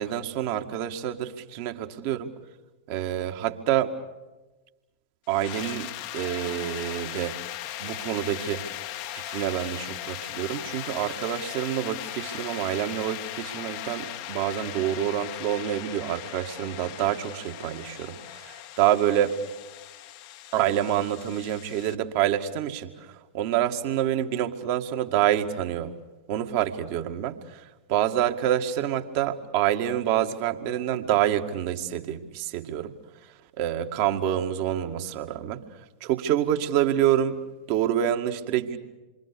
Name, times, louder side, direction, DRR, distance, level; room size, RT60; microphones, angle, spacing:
voice 1, 0.0-2.3 2.9-3.9 5.3-7.4 7.8-8.6 9.1-19.4 20.5-25.9 26.3-32.9 33.6-35.6 36.0-38.8, right 11 dB, 45° right, 6 dB, 2.1 m, -27 dB
sound 1, 5.3-22.0, left 13 dB, 45° left, 1.3 m, -38 dB
28.5 x 24.5 x 6.9 m, 1.1 s
figure-of-eight pair, 90°, 0 cm